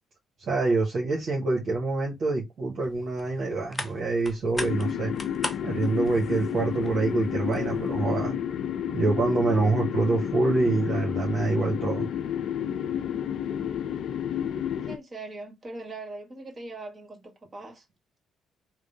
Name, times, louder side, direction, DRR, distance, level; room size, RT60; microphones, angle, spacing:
voice 1, 0.5-5.1 5.6-8.3 8.9-12.1, right 3 dB, 55° right, 1.0 m, -26 dB
sound 1, 2.8-8.0, left 1 dB, 15° left, 0.8 m, -40 dB
sound 2, 4.6-15.0, left 9 dB, 60° left, 0.4 m, -30 dB
voice 2, 14.7-17.8, right 2 dB, 30° right, 1.8 m, -41 dB
3.2 x 2.1 x 4.0 m
hypercardioid pair, 50°, 0 cm